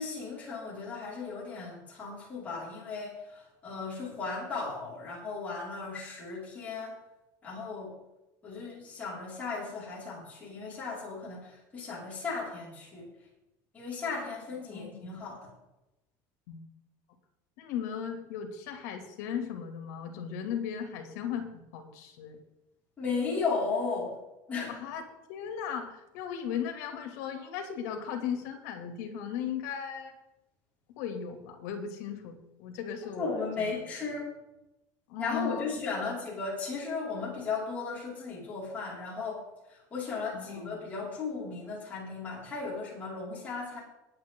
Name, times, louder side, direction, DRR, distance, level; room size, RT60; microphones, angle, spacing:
voice 1, 0.0-7.0 7.4-7.9 8.4-13.1 13.7-15.5 23.0-24.2 24.5-24.8 33.2-34.3 35.2-43.8, left 4 dB, 15° left, -7 dB, 5.4 m, -36 dB
voice 2, 14.7-15.1 16.5-16.6 17.6-22.4 24.7-25.0 25.3-30.1 31.0-33.8 35.1-35.6 40.3-40.8, left 8 dB, 75° left, 4 dB, 2.8 m, -37 dB
19.5 x 8.8 x 3.9 m, 0.94 s
cardioid pair, 180°, 9 cm